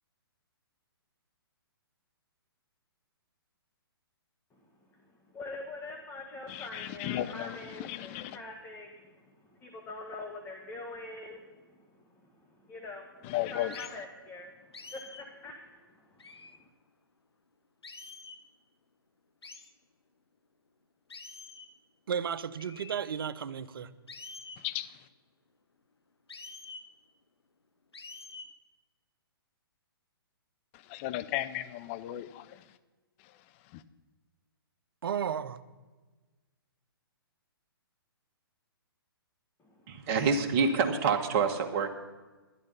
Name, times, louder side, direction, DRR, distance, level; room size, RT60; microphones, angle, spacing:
voice 1, 5.3-14.5 14.9-15.8 16.1-16.7 39.6-40.0, left 2 dB, 15° left, 1.4 m, -45 dB
voice 2, 6.5-8.4 13.3-13.9 24.6-24.9 30.9-32.4, left 14 dB, 30° left, 0.6 m, -35 dB
sound 1, 13.7-14.0 14.7-15.3 16.2-16.6 17.8-18.4 19.4-19.7 21.1-21.7 22.6-22.9 24.1-24.6 26.3-26.9 27.9-28.5, left 3 dB, 85° left, 1.1 m, -47 dB
voice 3, 22.1-23.9 35.0-35.6, right 7 dB, 65° right, 0.7 m, -33 dB
voice 4, 39.9-41.9, right 5 dB, 35° right, 1.5 m, -27 dB
12.0 x 11.0 x 5.4 m
hypercardioid pair, 130°, 13 cm